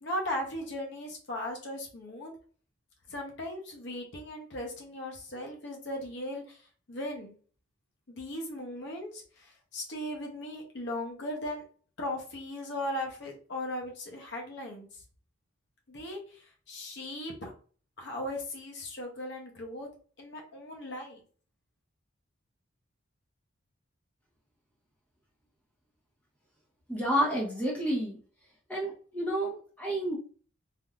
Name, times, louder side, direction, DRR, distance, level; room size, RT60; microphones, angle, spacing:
voice 1, 0.0-2.4 3.1-6.6 6.9-7.3 8.1-11.6 12.0-15.0 15.9-17.5 18.0-19.9 20.2-21.2, left 1 dB, 60° left, 0 dB, 0.7 m, -38 dB
voice 2, 26.9-28.2 28.7-30.2, equal, 5° left, -4 dB, 0.9 m, -30 dB
3.4 x 2.5 x 2.3 m, 0.42 s
head